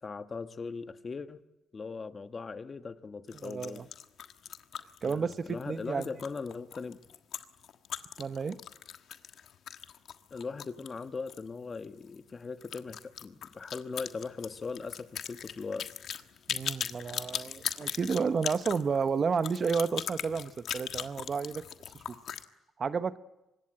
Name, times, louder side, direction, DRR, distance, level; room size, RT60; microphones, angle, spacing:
voice 1, 0.0-1.4 1.7-3.8 5.0-7.0 10.3-15.9, left 4 dB, 35° left, 1.3 m, -39 dB
sound 1, 3.3-11.5 11.7-11.8 12.1-12.2 12.6-22.4, left 9 dB, 70° left, 1.5 m, -39 dB
voice 2, 3.3-3.9 5.0-6.1 8.2-8.6 16.5-21.6 21.9-22.0 22.8-23.2, right 5 dB, 45° right, 1.0 m, -31 dB
25.0 x 21.0 x 8.9 m
cardioid pair, 90°, 0 cm